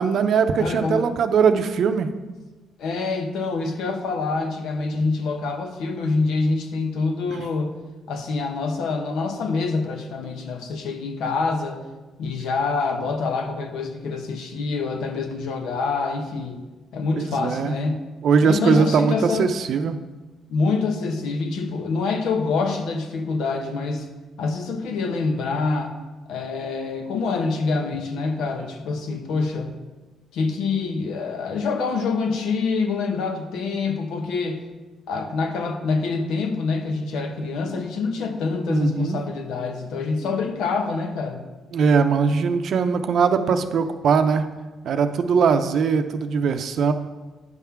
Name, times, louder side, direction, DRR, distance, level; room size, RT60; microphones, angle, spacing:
voice 1, 0.0-2.1 17.1-17.7 18.2-20.0 38.7-39.2 41.7-44.4 44.8-46.9, right 6 dB, 65° right, 8 dB, 0.6 m, -20 dB
voice 2, 0.6-1.0 2.8-7.7 8.1-11.8 12.2-16.6 16.9-18.0 18.4-19.5 20.5-24.0 24.4-25.9 26.3-29.7 30.3-34.6 35.1-41.5, left 4 dB, 85° left, 5 dB, 0.8 m, -26 dB
9.7 x 3.6 x 5.7 m, 1.2 s
cardioid pair, 90°, 0 cm